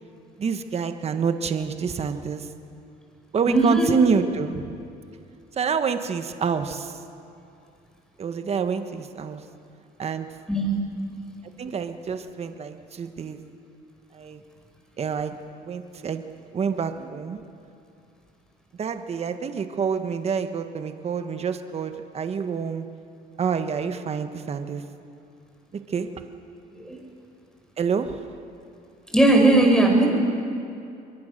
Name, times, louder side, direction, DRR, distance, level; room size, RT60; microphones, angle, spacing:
voice 1, 0.4-2.5 3.3-4.8 5.6-7.0 8.2-9.4 10.0-10.3 11.6-13.4 14.1-14.4 15.0-15.3 15.6-16.2 16.5-17.4 18.8-22.9 23.4-24.8 25.9-26.1 27.8-28.2, right 6 dB, 40° right, 8 dB, 1.4 m, -27 dB
voice 2, 3.5-3.9 10.5-10.8 26.7-27.0 29.1-30.1, right 2 dB, 5° left, 2 dB, 5.4 m, -18 dB
23.5 x 22.5 x 6.7 m, 2.6 s
cardioid pair, 110°, 17 cm